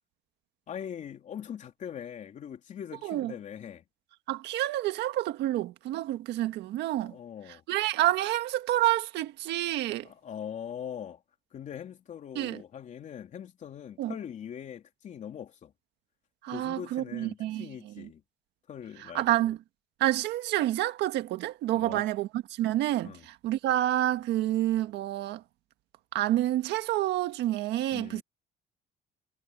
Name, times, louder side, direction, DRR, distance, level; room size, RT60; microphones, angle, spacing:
voice 1, 0.7-3.8 7.0-7.6 10.0-11.2 11.5-15.7 16.5-18.2 18.7-19.4 21.7-22.0 23.0-23.3 27.9-28.2, left 9 dB, 45° left, 3.4 m, -41 dB
voice 2, 3.0-3.3 4.3-7.2 7.7-10.1 12.3-12.6 14.0-14.1 16.4-18.1 19.0-19.6 20.0-25.4 26.1-28.2, right 14 dB, 85° right, 1.7 m, -28 dB
cardioid pair, 145°, 17 cm